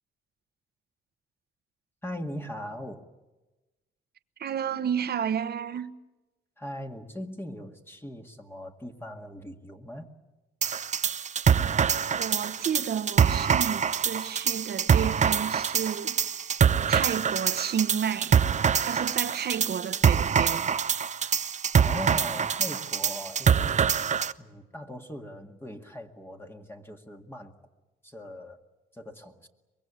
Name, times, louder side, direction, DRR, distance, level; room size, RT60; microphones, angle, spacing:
voice 1, 2.0-3.1 6.6-10.1 21.8-24.1 24.4-27.5 28.0-28.6 28.9-29.5, left 1 dB, 10° left, 1.9 m, -40 dB
voice 2, 4.4-5.9 12.1-16.5 16.9-18.4 18.8-20.7, right 8 dB, 55° right, 1.1 m, -31 dB
sound 1, 10.6-24.3, right 7 dB, 35° right, 0.7 m, -25 dB
24.0 x 22.0 x 8.7 m
cardioid pair, 90°, 20 cm